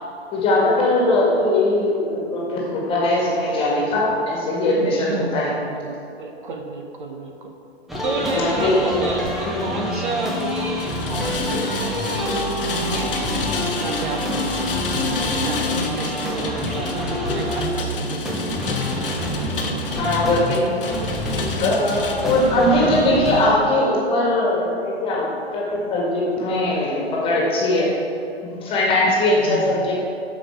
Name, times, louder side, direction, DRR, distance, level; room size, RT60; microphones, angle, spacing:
voice 1, 0.3-5.5 8.3-8.9 9.5-9.7 20.0-20.8 21.3-27.9 28.4-30.0, left 1 dB, 15° left, -4 dB, 1.9 m, -20 dB
voice 2, 4.8-7.5 8.0-14.7 15.2-18.8 19.1-19.2 29.4-30.0, right 3 dB, 50° right, 3 dB, 0.9 m, -31 dB
sound 1, 7.9-23.5, equal, ahead, 0.5 m, -27 dB
Rain, 10.2-22.5, left 4 dB, 55° left, 1.1 m, -30 dB
13.0 x 5.1 x 4.6 m, 2.7 s
figure-of-eight pair, 115°, 33 cm